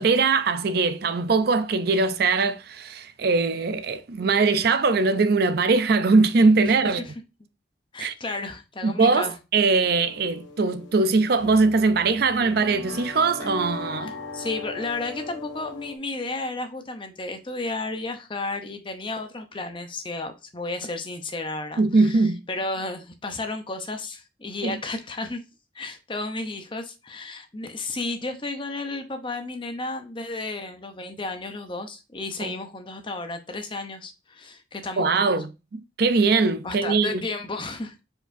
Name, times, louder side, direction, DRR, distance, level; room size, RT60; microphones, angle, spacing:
voice 1, 0.0-7.0 8.0-8.1 8.8-14.1 21.8-22.4 24.6-24.8 32.4-32.5 35.0-37.2, right 4 dB, 55° right, 0.4 m, -21 dB
voice 2, 6.7-7.1 7.9-9.4 14.0-25.4 25.7-35.4 36.6-38.0, left 2 dB, 25° left, 0.7 m, -33 dB
sound 1, 9.8-16.0, left 2 dB, 75° left, 0.8 m, -39 dB
4.8 x 4.2 x 2.6 m
head